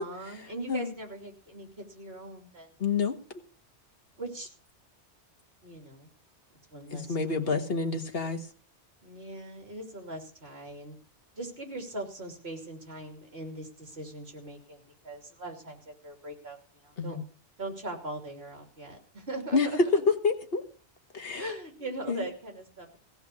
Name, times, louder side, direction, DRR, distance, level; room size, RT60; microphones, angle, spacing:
voice 1, 0.0-2.7 4.2-4.5 5.6-6.1 6.7-7.7 9.0-11.0 11.3-17.2 17.6-20.0 21.3-23.0, right 1 dB, 65° right, 2 dB, 3.3 m, -40 dB
voice 2, 2.8-3.2 6.9-8.5 17.0-17.2 19.5-19.7 20.1-20.6 21.1-21.5 22.1-22.3, left 5 dB, 55° left, 4 dB, 1.8 m, -28 dB
16.5 x 5.6 x 8.5 m, 0.41 s
omnidirectional pair, 1.2 m